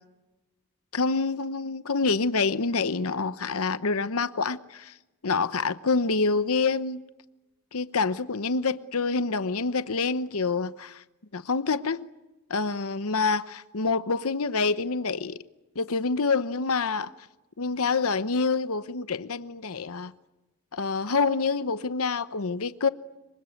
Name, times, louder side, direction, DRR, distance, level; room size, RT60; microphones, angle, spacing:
voice 1, 0.9-4.9 5.2-7.0 7.7-11.0 11.3-12.1 12.5-15.4 15.8-17.1 17.6-20.1 20.7-22.9, left 4 dB, 70° left, 0.9 m, -27 dB
26.0 x 24.0 x 9.2 m
head